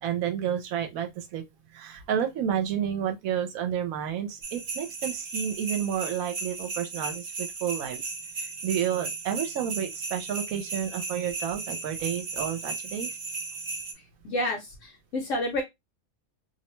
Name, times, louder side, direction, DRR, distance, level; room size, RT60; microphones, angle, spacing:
voice 1, 0.0-1.4 1.7-13.2, right 9 dB, 75° right, 1.0 m, -31 dB
sound 1, 4.4-13.9, right 3 dB, 50° right, 0.7 m, -36 dB
voice 2, 14.2-15.6, left 1 dB, 65° left, 1.0 m, -29 dB
2.6 x 2.1 x 2.9 m
omnidirectional pair, 1.5 m